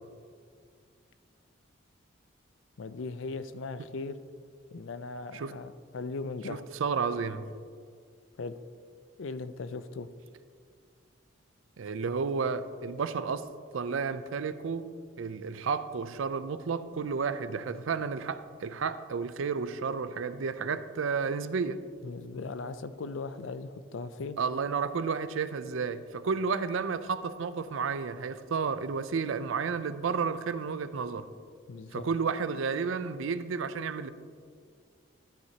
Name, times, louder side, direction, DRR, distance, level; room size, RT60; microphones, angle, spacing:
voice 1, 2.8-4.2 4.7-6.7 8.4-8.5 9.2-10.1 22.0-24.4 31.7-32.1, left 3 dB, 70° left, 13 dB, 0.5 m, -38 dB
voice 2, 6.5-7.5 11.8-13.4 13.7-21.8 24.4-31.3 31.9-34.1, right 5 dB, 75° right, 13 dB, 0.4 m, -32 dB
12.0 x 9.6 x 2.8 m, 2.1 s
head